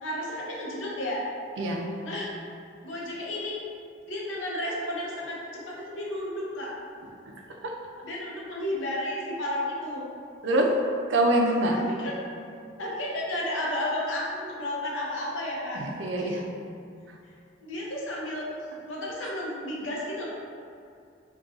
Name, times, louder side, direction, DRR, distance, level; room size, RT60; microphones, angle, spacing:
voice 1, 0.0-1.2 2.0-2.3 2.8-3.6 4.1-6.7 8.0-10.0 11.7-12.2 12.8-15.8 16.2-16.3 17.6-18.5 18.9-20.3, left 1 dB, 90° left, -4 dB, 0.7 m, -32 dB
voice 2, 11.1-11.8 15.7-16.4 19.2-19.3, right 1 dB, 70° right, 1 dB, 0.4 m, -24 dB
2.5 x 2.3 x 3.7 m, 2.4 s
head